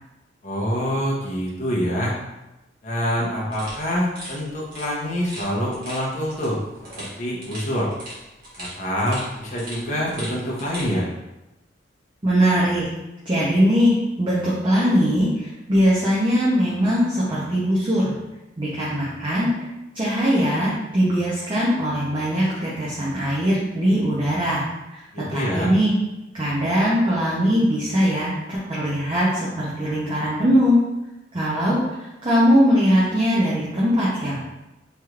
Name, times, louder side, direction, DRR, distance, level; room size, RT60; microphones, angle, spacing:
voice 1, 0.4-2.1 2.8-6.6 7.0-7.9 8.6-11.1 25.1-25.7, equal, 40° left, -4 dB, 0.7 m, -26 dB
sound 1, 3.5-10.9, right 1 dB, 55° right, 1.2 m, -40 dB
voice 2, 12.2-12.9 13.3-18.1 18.6-19.5 19.9-24.6 24.9-25.0 25.3-25.9 26.3-30.8 31.3-34.4, equal, 30° right, -8 dB, 0.6 m, -21 dB
3.1 x 2.9 x 2.4 m, 0.99 s
head